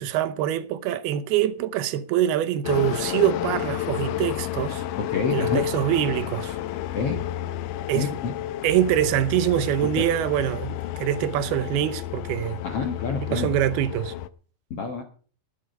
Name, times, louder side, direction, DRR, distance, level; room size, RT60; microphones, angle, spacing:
voice 1, 0.0-4.8 5.3-6.6 7.9-8.1 8.6-12.6 13.2-14.1, right 12 dB, 80° right, 2.7 m, -24 dB
sound 1, 2.6-14.3, left 13 dB, 80° left, 1.9 m, -31 dB
voice 2, 5.0-5.6 6.9-7.2 7.9-8.3 12.6-13.5 14.7-15.0, left 4 dB, 60° left, 1.5 m, -28 dB
19.0 x 8.4 x 5.3 m
omnidirectional pair, 4.6 m